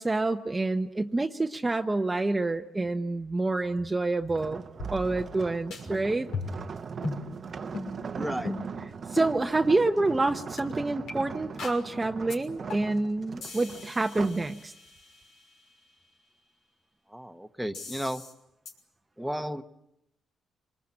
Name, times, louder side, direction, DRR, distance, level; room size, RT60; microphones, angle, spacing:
voice 1, 0.0-4.6 4.9-6.3 9.1-14.7, right 2 dB, 20° right, 5 dB, 0.9 m, -27 dB
sound 1, 4.3-14.5 15.0-15.2, right 5 dB, 45° right, 1.0 m, -40 dB
sound 2, 4.8-5.4 5.7-5.8 6.3-6.7 7.0-7.2 7.7-7.9 8.4-8.7 9.2-9.3 9.9-10.0 10.6-10.7 11.1-11.2 11.6-11.8 12.3-12.4 12.7-13.0 13.4-15.2 17.7-18.3 18.7-18.8, left 3 dB, 80° left, 5.9 m, -37 dB
voice 2, 8.1-8.5 17.1-18.2 19.2-19.6, equal, ahead, 6 dB, 1.2 m, -33 dB
26.0 x 21.0 x 8.7 m, 0.84 s
cardioid pair, 90°, 0 cm